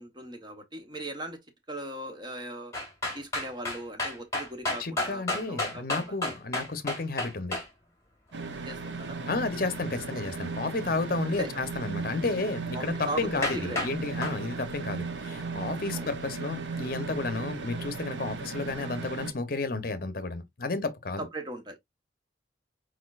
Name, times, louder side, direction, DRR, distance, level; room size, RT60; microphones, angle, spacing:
voice 1, 0.0-1.4 1.7-2.7 3.1-6.2 8.5-9.2 11.4-11.5 12.7-13.8 15.9-16.1 21.2-21.8, right 1 dB, 25° right, 0.9 m, -39 dB
sound 1, 2.7-7.7 13.0-13.1 13.4-13.9 14.2-14.4, left 2 dB, 15° left, 2.0 m, -31 dB
voice 2, 4.8-7.6 9.3-21.3, left 3 dB, 50° left, 0.7 m, -32 dB
sound 2, 8.3-19.3, right 4 dB, 75° right, 0.8 m, -36 dB
4.6 x 4.2 x 2.3 m
head